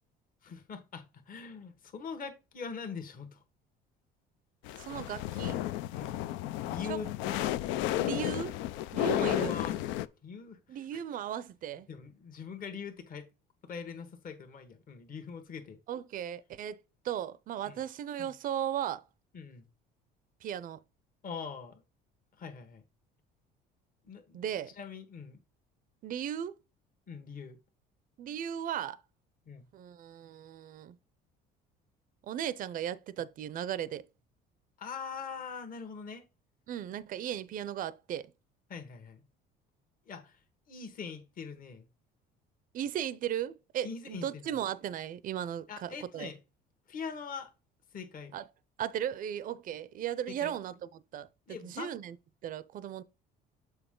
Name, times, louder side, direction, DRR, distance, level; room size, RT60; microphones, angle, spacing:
voice 1, 0.4-3.4 6.0-6.3 6.7-8.0 9.0-9.8 10.2-11.0 11.9-13.3 13.6-15.8 17.6-17.8 18.2-18.3 19.3-19.7 21.2-21.8 22.4-22.8 24.0-24.4 24.8-25.4 27.1-27.6 29.5-29.7 34.8-36.3 38.7-39.2 40.0-41.9 43.8-44.6 45.7-46.4 46.9-47.5 47.9-48.3 50.3-50.6 51.5-51.9, left 6 dB, 45° left, 1.4 m, -42 dB
sound 1, 4.6-10.1, left 14 dB, 80° left, 0.4 m, -33 dB
voice 2, 4.8-5.6 6.9-7.0 7.9-8.6 8.9-9.5 10.7-11.9 15.9-19.0 20.4-20.8 24.3-24.7 26.0-26.5 28.2-29.0 29.7-31.0 32.2-34.0 36.7-38.3 42.7-46.3 48.3-48.4 48.8-51.3 51.6-52.1 52.4-53.0, right 10 dB, 45° right, 0.5 m, -36 dB
7.1 x 4.3 x 3.7 m
supercardioid pair, 95°, 19 cm